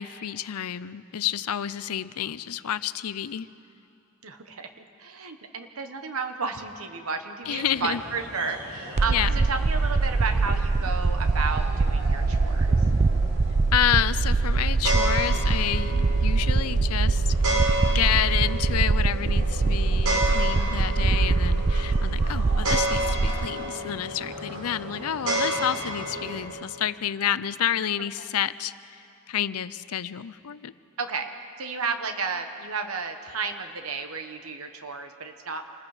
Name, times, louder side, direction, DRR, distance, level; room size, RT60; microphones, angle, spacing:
voice 1, 0.0-3.5 7.5-8.0 9.1-9.4 13.7-17.3 17.9-29.0 29.3-30.7, left 10 dB, 90° left, 16 dB, 0.5 m, -29 dB
voice 2, 4.2-12.7 28.2-28.3 31.0-31.3 31.6-35.6, right 4 dB, 70° right, 7 dB, 1.2 m, -32 dB
sound 1, 7.4-26.4, right 1 dB, 90° right, 4.6 m, -32 dB
sound 2, 9.0-23.5, right 3 dB, 30° right, 0.4 m, -23 dB
27.5 x 20.5 x 5.0 m, 2.7 s
head